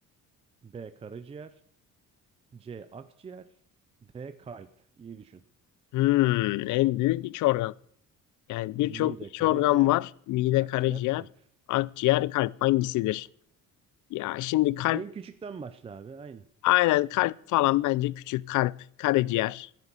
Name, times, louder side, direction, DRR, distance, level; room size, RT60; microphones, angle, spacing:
voice 1, 0.6-1.6 2.5-3.5 4.0-4.7 5.0-5.4 8.7-9.9 10.6-11.3 14.9-16.5, right 5 dB, 20° right, 0.5 m, -42 dB
voice 2, 5.9-7.7 8.5-11.2 11.7-13.3 14.1-15.0 16.6-18.7 19.0-19.7, left 17 dB, 70° left, 0.5 m, -25 dB
14.0 x 10.5 x 6.9 m
cardioid pair, 180°, 31 cm